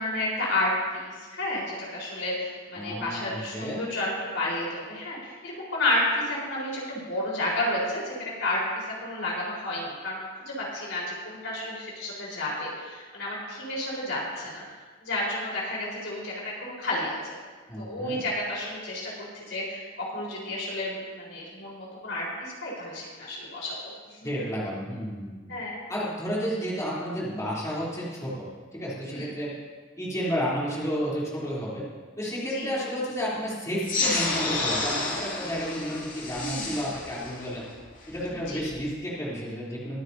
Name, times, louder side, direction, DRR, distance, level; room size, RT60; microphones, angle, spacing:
voice 1, 0.0-8.6 9.0-10.2 10.5-14.6 15.0-17.4 17.8-23.9 24.2-24.4 25.5-25.8 29.1-29.3 32.5-32.7 36.4-36.7 38.3-38.6, left 1 dB, 75° left, -5 dB, 4.4 m, -31 dB
voice 2, 2.7-3.8 17.7-18.2 24.2-25.5 25.9-29.5 30.0-31.8 32.2-37.6 38.1-40.0, equal, 15° left, -7 dB, 3.4 m, -31 dB
sound 1, 33.8-38.8, left 2 dB, 45° left, 2.3 m, -30 dB
23.0 x 9.6 x 2.8 m, 1.4 s
head